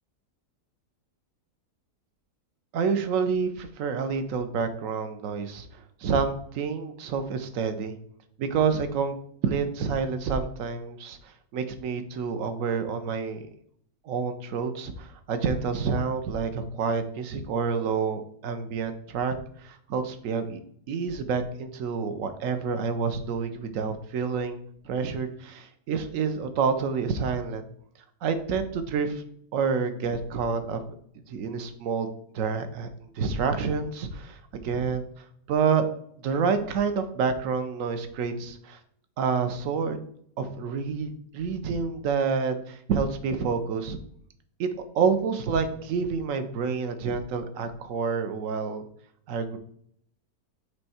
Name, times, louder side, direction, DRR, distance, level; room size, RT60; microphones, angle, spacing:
voice 1, 2.7-7.9 8.4-9.2 9.4-13.4 14.0-19.4 19.6-20.6 20.9-24.6 24.8-27.6 28.2-29.2 29.5-30.8 31.3-32.1 32.3-35.1 35.5-35.8 36.2-38.8 39.2-40.0 40.4-44.0 44.6-44.7 44.9-48.8 49.3-49.6, right 5 dB, 60° right, 9 dB, 1.0 m, -28 dB
7.9 x 3.3 x 4.2 m, 0.67 s
omnidirectional pair, 1.9 m